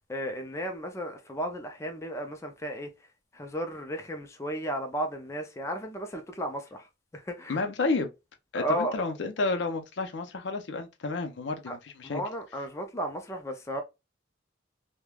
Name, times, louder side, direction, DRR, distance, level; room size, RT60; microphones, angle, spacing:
voice 1, 0.1-2.9 3.3-6.9 7.1-7.6 8.5-9.0 11.7-11.8 12.0-13.8, equal, 15° left, 0.4 m, -34 dB
voice 2, 7.5-8.1 8.5-12.2, left 3 dB, 70° left, 0.5 m, -31 dB
3.2 x 2.1 x 2.2 m
head